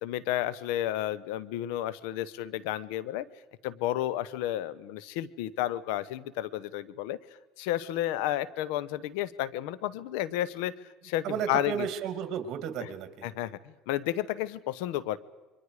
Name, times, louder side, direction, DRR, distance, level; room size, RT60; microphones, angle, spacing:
voice 1, 0.0-3.3 3.6-7.2 7.6-11.9 12.8-12.9 13.2-15.2, left 13 dB, 80° left, 17 dB, 1.0 m, -32 dB
voice 2, 11.2-13.3, right 8 dB, 55° right, 9 dB, 2.6 m, -33 dB
28.5 x 23.5 x 5.0 m, 1.2 s
supercardioid pair, 115°, 0 cm